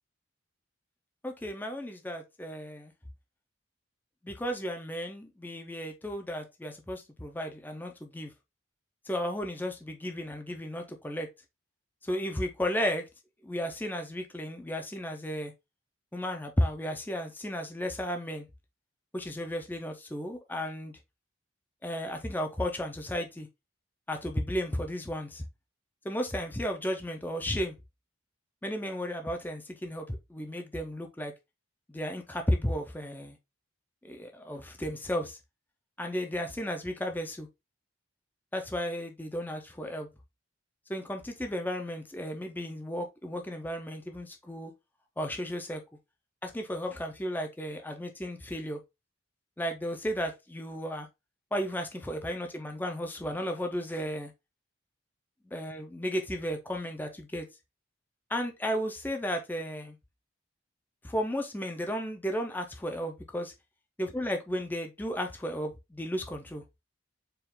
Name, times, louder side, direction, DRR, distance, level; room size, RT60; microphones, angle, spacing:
voice 1, 1.2-2.9 4.2-8.3 9.0-11.3 12.0-13.1 13.4-15.5 16.1-18.5 19.1-21.0 21.8-23.5 24.1-25.4 26.0-27.8 28.6-31.3 31.9-33.4 34.0-35.4 36.0-37.5 38.5-40.1 40.9-44.7 45.2-45.8 46.4-48.8 49.6-51.1 51.5-54.3 55.5-57.5 58.3-60.0 61.0-63.5 64.0-66.6, equal, 10° left, 0.5 m, -34 dB
4.5 x 2.4 x 3.6 m
head